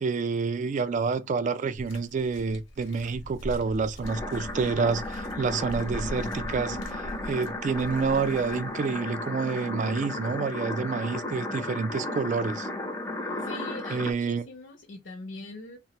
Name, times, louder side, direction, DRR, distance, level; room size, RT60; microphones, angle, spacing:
voice 1, 0.0-12.7 13.9-14.5, right 5 dB, 40° right, 0.3 m, -28 dB
sound 1, 1.7-9.0 9.8-9.9, equal, 85° left, 0.9 m, -41 dB
sound 2, 4.0-14.1, left 2 dB, 15° left, 0.5 m, -34 dB
voice 2, 13.4-15.8, left 2 dB, 70° left, 0.5 m, -41 dB
3.2 x 2.0 x 2.8 m
head